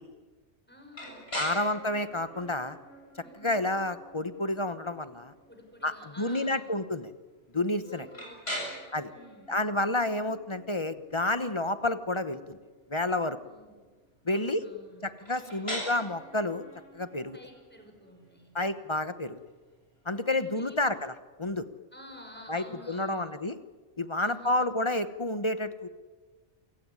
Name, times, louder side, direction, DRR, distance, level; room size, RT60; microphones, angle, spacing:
voice 1, 0.7-1.5 3.2-3.6 5.5-6.7 7.8-8.7 9.1-9.5 13.4-13.8 14.3-15.8 17.3-18.5 20.1-20.9 21.9-23.3 24.2-24.6, equal, 10° left, 3 dB, 6.1 m, -51 dB
sound 1, 0.9-20.7, equal, 60° left, 8.2 m, -44 dB
voice 2, 1.3-2.8 3.4-5.3 5.8-7.1 7.5-8.1 8.9-9.1 9.5-12.6 12.9-13.4 14.2-14.6 15.0-16.6 16.9-17.4 18.5-19.4 20.0-21.1 21.4-21.7 22.5-23.5 24.0-25.9, left 2 dB, 25° left, 11 dB, 1.0 m, -30 dB
28.0 x 16.5 x 9.8 m, 1.3 s
omnidirectional pair, 1.2 m